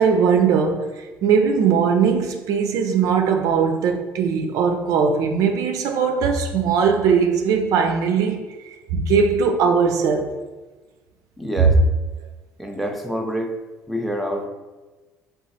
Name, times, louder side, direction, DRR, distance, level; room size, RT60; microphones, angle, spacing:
voice 1, 0.0-10.4, right 6 dB, 60° right, 0.3 m, -20 dB
voice 2, 11.4-11.8 12.6-13.5 13.9-14.5, equal, ahead, 0.5 m, -26 dB
3.8 x 2.3 x 2.7 m
hypercardioid pair, 55°, 6 cm